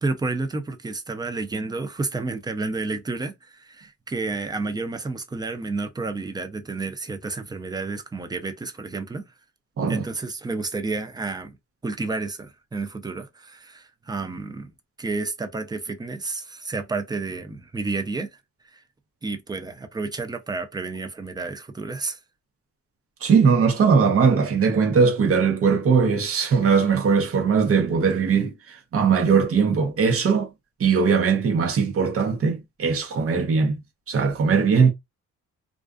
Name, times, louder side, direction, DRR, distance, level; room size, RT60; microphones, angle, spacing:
voice 1, 0.0-9.3 9.9-11.6 11.8-14.7 15.0-18.3 18.7-18.8 19.2-22.2, right 3 dB, 15° right, 0.4 m, -30 dB
voice 2, 23.2-30.5 30.8-33.8 34.1-34.9, right 5 dB, 50° right, 0.9 m, -20 dB
2.4 x 2.3 x 2.3 m
cardioid pair, 90°, 30 cm